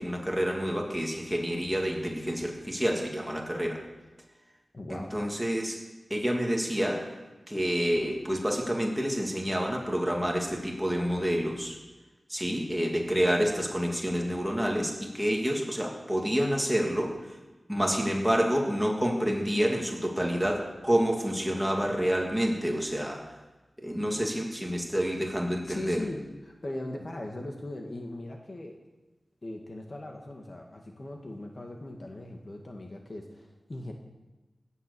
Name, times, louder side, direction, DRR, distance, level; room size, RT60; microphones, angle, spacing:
voice 1, 0.0-3.8 4.9-5.8 6.1-7.1 7.5-11.8 12.3-17.2 17.7-23.2 23.8-26.0, equal, 5° right, 0 dB, 2.8 m, -28 dB
voice 2, 4.7-5.1 25.6-28.8 29.4-33.9, left 1 dB, 40° left, 2 dB, 2.0 m, -39 dB
17.0 x 9.5 x 7.0 m, 1.2 s
wide cardioid pair, 100°, 0 cm